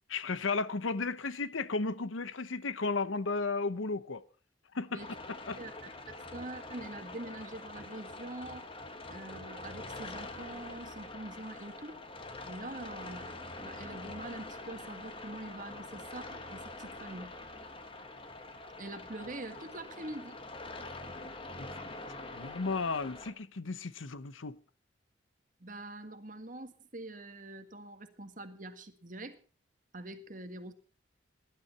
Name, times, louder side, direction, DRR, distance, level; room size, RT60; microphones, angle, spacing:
voice 1, 0.1-4.2 4.7-5.0 5.3-5.6 21.6-21.7 22.3-24.6, left 3 dB, 85° left, 0.9 m, -34 dB
sound 1, 5.0-23.3, left 2 dB, 25° left, 1.5 m, -45 dB
voice 2, 5.5-8.7 9.1-12.0 12.4-17.4 18.8-20.4 25.6-29.4 29.9-30.7, right 2 dB, 40° right, 1.7 m, -44 dB
19.0 x 11.5 x 4.3 m
head